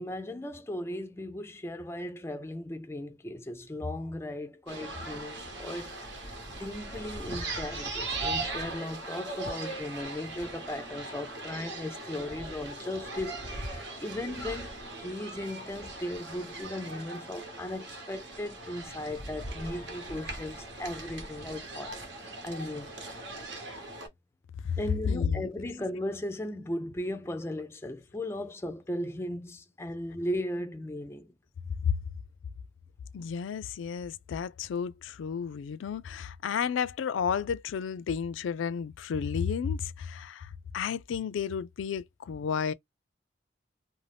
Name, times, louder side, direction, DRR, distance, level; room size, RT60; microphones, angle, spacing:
voice 1, 0.0-5.9 6.2-6.3 6.6-22.0 22.4-22.9 24.8-31.3, left 1 dB, 15° left, 0.4 m, -37 dB
sound 1, 4.7-24.1, right 2 dB, 70° right, 1.0 m, -39 dB
sound 2, 9.3-17.3, left 1 dB, 45° right, 0.6 m, -55 dB
voice 2, 25.1-25.5 33.1-42.7, left 7 dB, 85° left, 0.3 m, -32 dB
2.6 x 2.0 x 3.3 m
head